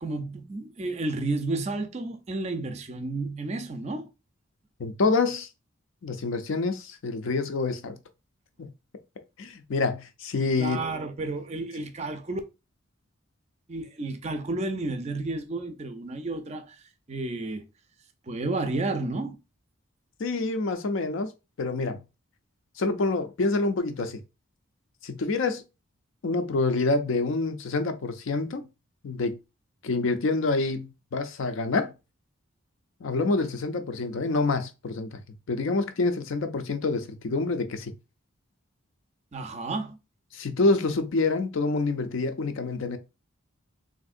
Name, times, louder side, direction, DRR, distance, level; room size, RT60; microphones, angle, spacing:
voice 1, 0.0-4.1 10.6-12.4 13.7-16.8 17.1-17.7 18.3-19.4 39.3-40.0, right 2 dB, 30° right, 0.4 m, -31 dB
voice 2, 4.8-5.5 6.0-8.0 9.4-10.8 20.2-21.3 21.6-22.0 22.8-24.2 25.0-25.6 26.2-28.7 29.0-29.4 29.8-31.9 33.0-35.2 35.5-37.9 40.3-43.0, left 3 dB, 65° left, 0.5 m, -27 dB
3.5 x 2.6 x 2.4 m
head